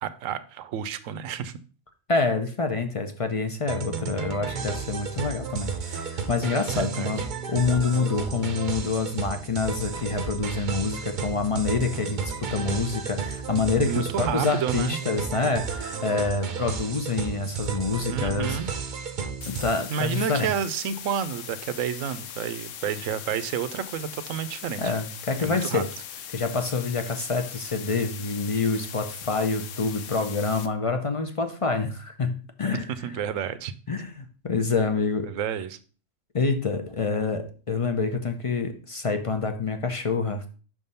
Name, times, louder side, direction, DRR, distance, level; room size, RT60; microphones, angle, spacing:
voice 1, 0.0-1.6 6.7-7.1 13.8-15.0 18.1-18.7 19.9-24.9 25.4-25.8 32.9-33.7 35.3-35.8, right 8 dB, 80° right, 1.0 m, -30 dB
voice 2, 2.1-7.2 7.5-18.6 19.4-20.5 24.8-25.8 26.3-32.9 33.9-35.3 36.3-40.4, left 4 dB, 40° left, 0.5 m, -27 dB
sound 1, 3.7-20.0, right 6 dB, 45° right, 0.7 m, -33 dB
sound 2, 19.4-30.7, left 9 dB, 75° left, 1.0 m, -40 dB
6.0 x 3.6 x 5.4 m
omnidirectional pair, 1.3 m